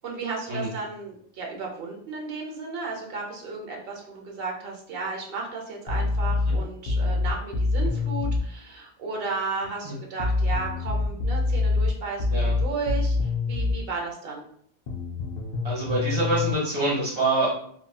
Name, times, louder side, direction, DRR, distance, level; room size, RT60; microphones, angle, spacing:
voice 1, 0.0-13.2 13.5-14.4, right 4 dB, 65° right, 0 dB, 0.9 m, -34 dB
sound 1, 5.9-8.5 10.2-13.8 14.9-16.5, left 3 dB, 70° left, 0.8 m, -25 dB
voice 2, 15.6-17.5, right 2 dB, 40° right, -5 dB, 1.2 m, -25 dB
2.6 x 2.6 x 2.3 m, 0.65 s
omnidirectional pair, 1.1 m